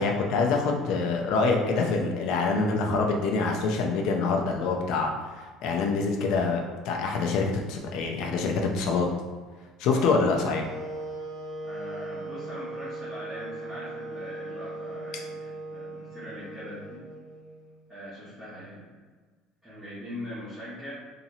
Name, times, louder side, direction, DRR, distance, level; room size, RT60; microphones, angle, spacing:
voice 1, 0.0-5.1 5.6-9.1 9.8-10.7, left 4 dB, 55° left, 1 dB, 0.5 m, -25 dB
sound 1, 9.8-17.9, right 2 dB, 60° right, 0.8 m, -39 dB
voice 2, 11.6-17.0 17.9-18.9 19.6-20.9, left 1 dB, 5° right, -13 dB, 0.8 m, -41 dB
2.9 x 2.7 x 2.6 m, 1.4 s
cardioid pair, 180°, 0 cm